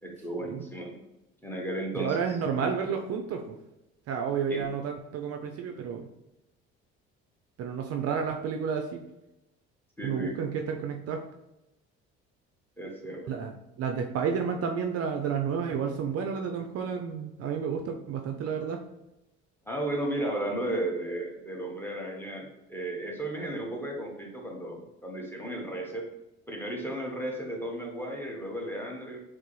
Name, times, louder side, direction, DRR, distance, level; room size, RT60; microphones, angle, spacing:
voice 1, 0.0-0.9 1.4-2.2 4.5-4.6 10.0-10.4 12.8-13.3 19.7-26.1 26.5-29.2, right 1 dB, 5° left, 0 dB, 1.0 m, -34 dB
voice 2, 1.9-3.6 4.1-6.1 7.6-9.0 10.0-11.2 13.3-18.8, right 6 dB, 50° right, 4 dB, 0.4 m, -31 dB
4.4 x 2.0 x 3.0 m, 0.93 s
hypercardioid pair, 60°, 32 cm